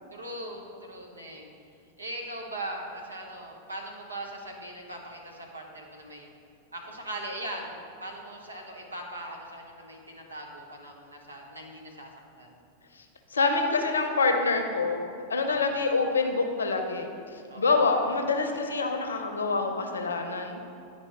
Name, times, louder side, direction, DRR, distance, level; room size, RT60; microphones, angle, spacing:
voice 1, 0.1-1.5 2.0-6.3 6.7-12.1 12.4-12.6 15.4-15.8 17.5-17.7, right 1 dB, 80° right, 0 dB, 1.0 m, -40 dB
voice 2, 13.3-15.0 15.3-17.1 17.6-20.6, left 4 dB, 70° left, 5 dB, 0.6 m, -26 dB
10.5 x 4.3 x 3.0 m, 2.5 s
figure-of-eight pair, 90°, 0 cm